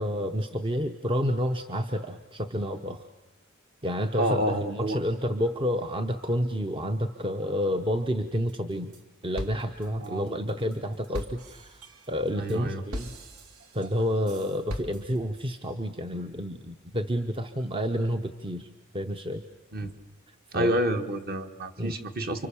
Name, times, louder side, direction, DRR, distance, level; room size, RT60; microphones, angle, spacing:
voice 1, 0.0-3.1 3.8-8.9 9.2-13.1 13.7-18.7 18.9-19.4 20.5-20.8 21.8-21.9, equal, 25° right, 7 dB, 0.8 m, -29 dB
voice 2, 4.2-5.0 10.0-10.3 12.4-12.8 19.7-19.9 20.5-22.5, right 1 dB, 45° right, 6 dB, 1.5 m, -29 dB
sound 1, 8.5-9.0 9.4-15.4, equal, 85° right, 2.0 m, -40 dB
29.5 x 25.0 x 7.0 m, 1.1 s
head